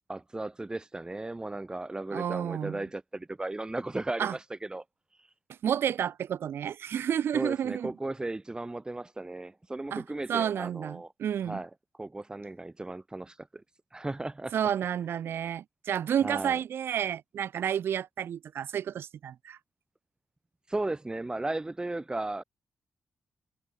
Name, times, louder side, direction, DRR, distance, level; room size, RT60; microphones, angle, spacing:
voice 1, 0.1-4.8 5.1-5.3 7.3-11.1 11.4-11.7 12.0-13.6 13.9-14.5 16.2-16.6 20.7-22.4, right 2 dB, 20° right, 1.4 m, -35 dB
voice 2, 2.1-2.8 4.2-4.3 5.6-7.9 9.9-10.0 10.3-11.6 14.5-19.6, right 9 dB, 70° right, 0.4 m, -30 dB
cardioid pair, 65°, 4 cm